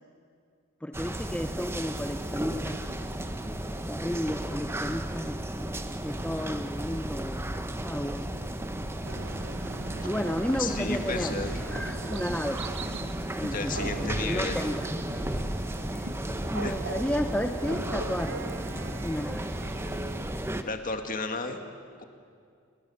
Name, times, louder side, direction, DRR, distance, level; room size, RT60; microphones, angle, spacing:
voice 1, 0.8-3.0 3.9-7.5 7.8-8.3 10.0-12.7 13.4-15.2 15.9-16.1 16.5-18.5 19.0-19.5, equal, 5° left, 7 dB, 0.6 m, -33 dB
sound 1, 0.9-20.6, right 1 dB, 10° right, 1.0 m, -34 dB
sound 2, 9.0-20.3, right 3 dB, 60° right, 1.1 m, -41 dB
voice 2, 10.6-11.6 13.5-14.6 16.6-16.7 20.6-21.6 22.0-22.1, left 3 dB, 40° left, 6 dB, 1.9 m, -32 dB
29.5 x 20.0 x 7.1 m, 2.3 s
head